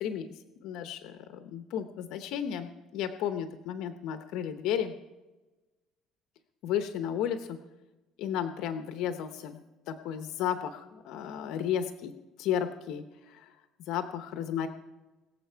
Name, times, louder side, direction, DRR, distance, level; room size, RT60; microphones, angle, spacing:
voice 1, 0.0-4.9 6.6-7.6 8.2-12.1 12.4-13.5 13.9-14.7, left 9 dB, 70° left, 9 dB, 0.8 m, -33 dB
22.0 x 7.3 x 4.6 m, 1.1 s
cardioid pair, 135°, 0 cm